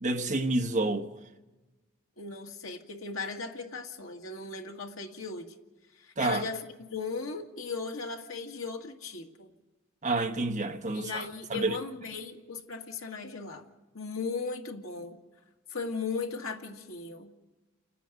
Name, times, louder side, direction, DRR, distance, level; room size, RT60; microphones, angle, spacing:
voice 1, 0.0-1.1 6.2-6.4 10.0-11.8, right 2 dB, 35° right, 1.3 m, -29 dB
voice 2, 2.2-5.5 5.9-9.5 10.9-13.7 13.9-15.2 15.7-17.3, left 4 dB, 80° left, 2.0 m, -37 dB
30.0 x 10.0 x 9.3 m
head